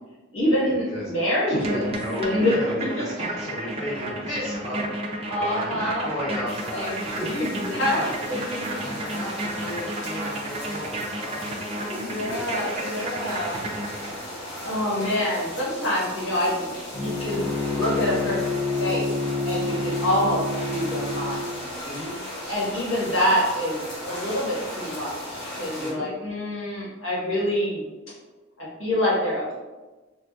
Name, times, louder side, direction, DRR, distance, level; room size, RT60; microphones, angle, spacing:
voice 1, 0.3-1.9 2.2-2.6 5.3-6.1 6.7-6.9 7.2-8.0 8.3-8.8 12.0-13.6 14.6-17.4 17.7-19.1 19.4-21.6 22.5-27.9 28.6-29.5, left 1 dB, 75° left, -7 dB, 1.2 m, -26 dB
voice 2, 1.5-8.2 8.8-13.0 21.8-22.2 25.8-26.1, left 1 dB, 30° left, -9 dB, 0.9 m, -34 dB
sound 1, 1.5-14.3, right 1 dB, 30° right, 0.4 m, -33 dB
sound 2, 6.5-25.9, left 1 dB, 60° left, 1.0 m, -37 dB
Bowed string instrument, 16.9-21.5, left 3 dB, 5° left, 0.7 m, -28 dB
3.2 x 2.5 x 2.3 m, 1.2 s
head